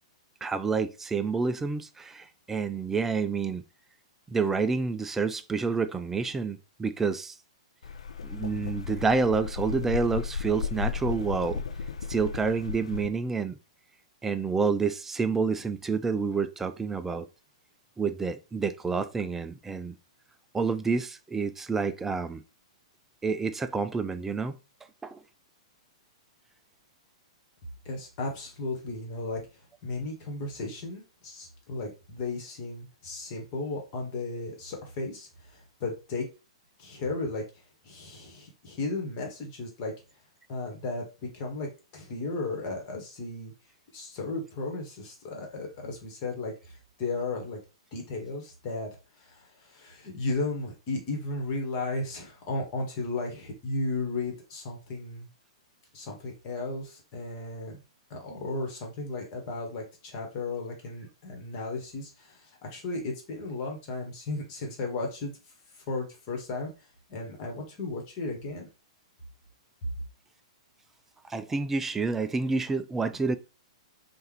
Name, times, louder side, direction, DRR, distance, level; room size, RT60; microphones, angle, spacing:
voice 1, 0.4-3.6 4.3-7.4 8.2-11.6 12.1-13.6 14.2-17.3 18.0-19.9 20.5-22.4 23.2-24.5 25.0-25.2 71.3-73.4, right 4 dB, 10° right, 0.4 m, -28 dB
sound 1, 7.8-13.1, left 6 dB, 65° left, 0.5 m, -34 dB
voice 2, 27.8-29.4 29.8-36.2 36.8-37.4 37.8-39.9 40.5-41.7 41.9-43.5 43.9-47.6 47.9-48.9 49.2-55.3 55.9-57.8 58.1-65.3 65.9-66.7 67.1-68.7, left 2 dB, 35° left, 1.7 m, -35 dB
5.4 x 2.6 x 3.4 m
figure-of-eight pair, 110°, 3 cm